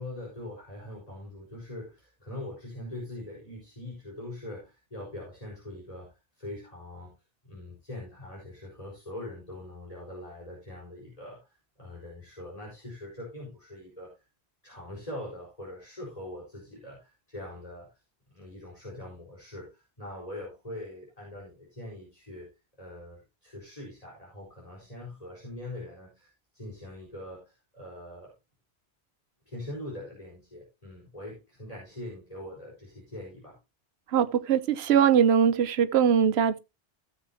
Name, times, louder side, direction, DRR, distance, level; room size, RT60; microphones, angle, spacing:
voice 1, 0.0-7.1 7.4-14.1 14.6-17.9 18.3-22.5 22.8-28.3 29.5-33.6, left 1 dB, 35° left, 4.8 m, -42 dB
voice 2, 34.1-36.6, right 8 dB, 75° right, 1.0 m, -22 dB
16.0 x 7.5 x 2.8 m
omnidirectional pair, 1.1 m